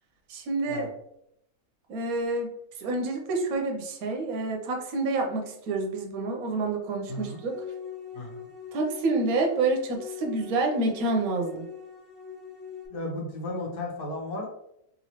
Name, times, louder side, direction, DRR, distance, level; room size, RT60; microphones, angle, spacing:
voice 1, 0.3-0.9 1.9-2.5 2.8-7.5 8.7-11.7, right 3 dB, 70° right, 2 dB, 1.1 m, -28 dB
voice 2, 7.1-7.4 8.1-8.5 12.9-14.5, left 2 dB, 85° left, -1 dB, 1.5 m, -34 dB
sound 1, 7.1-12.9, left 7 dB, 45° left, 1.1 m, -43 dB
3.3 x 3.0 x 2.8 m, 0.76 s
omnidirectional pair, 1.6 m